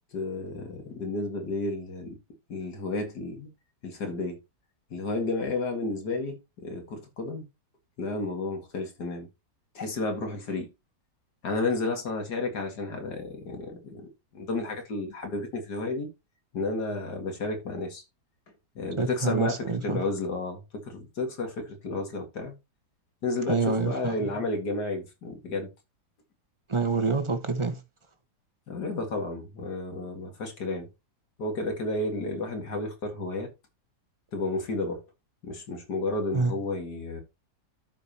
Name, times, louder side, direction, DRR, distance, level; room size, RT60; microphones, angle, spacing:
voice 1, 0.1-2.2 2.5-3.5 3.8-4.4 4.9-7.4 8.0-9.3 9.7-10.7 11.4-16.1 16.5-18.0 18.8-22.5 23.2-25.7 28.7-30.9 31.4-33.5 34.3-35.0 35.4-37.2, left 2 dB, 70° left, 2.5 m, -32 dB
voice 2, 19.0-20.0 23.5-24.3 26.7-27.8 36.3-36.5, right 4 dB, 20° right, 0.9 m, -27 dB
13.0 x 5.2 x 2.9 m
omnidirectional pair, 1.8 m